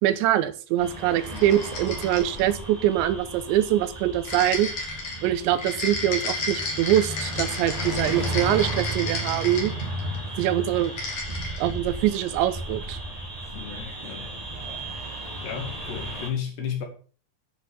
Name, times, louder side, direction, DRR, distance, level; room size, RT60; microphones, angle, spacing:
voice 1, 0.0-4.7 5.2-9.7 10.4-10.9 11.6-13.0, right 12 dB, 85° right, 3.2 m, -24 dB
sound 1, 0.8-16.3, right 1 dB, 10° right, 1.8 m, -34 dB
sound 2, 1.2-2.5 4.2-10.2 10.8-11.7, left 3 dB, 45° left, 3.3 m, -32 dB
voice 2, 13.5-14.4 15.4-16.9, left 8 dB, 70° left, 4.4 m, -33 dB
11.0 x 6.1 x 7.1 m
omnidirectional pair, 5.1 m